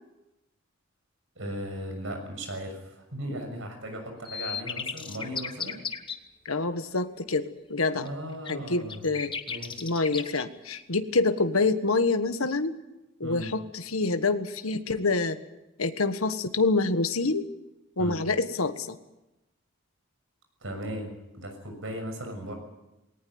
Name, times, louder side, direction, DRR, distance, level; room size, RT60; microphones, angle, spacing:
voice 1, 1.3-5.8 7.9-9.1 9.5-9.9 13.2-13.5 18.0-18.2 20.6-22.5, equal, 65° right, 5 dB, 6.6 m, -37 dB
sound 1, 4.2-6.1 8.0-8.1 8.4-10.4, left 6 dB, 25° left, 1.2 m, -35 dB
voice 2, 6.4-8.1 8.5-9.3 9.8-12.7 13.2-15.4 15.8-17.4 18.0-19.0, left 3 dB, 90° left, 9 dB, 1.4 m, -26 dB
19.5 x 18.5 x 9.5 m, 0.97 s
head